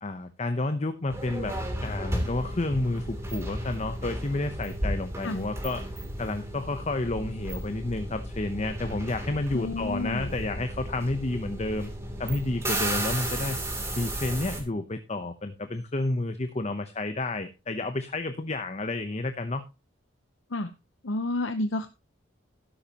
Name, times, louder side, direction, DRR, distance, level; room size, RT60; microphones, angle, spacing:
voice 1, 0.0-1.5 1.8-5.9 6.2-11.9 12.2-13.6 14.0-19.6, left 2 dB, 35° left, 9 dB, 0.8 m, -30 dB
sound 1, 1.1-14.6, right 1 dB, 15° right, 2.9 m, -34 dB
voice 2, 9.5-10.3 20.5-20.7 21.0-21.9, left 2 dB, 75° left, 8 dB, 0.9 m, -30 dB
13.0 x 10.5 x 2.9 m, 0.27 s
head